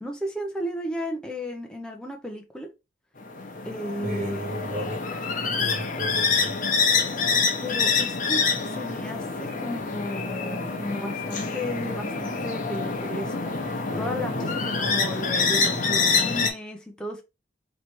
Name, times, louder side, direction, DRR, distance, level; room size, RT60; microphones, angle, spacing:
voice 1, 0.0-2.7 3.6-4.4 7.6-17.2, equal, 5° left, 0.6 m, -34 dB
sound 1, 3.2-16.5, left 4 dB, 45° left, 0.8 m, -26 dB
voice 2, 4.0-5.0 5.6-6.6 13.9-14.2, right 1 dB, 45° right, 0.9 m, -34 dB
3.2 x 3.0 x 4.4 m
head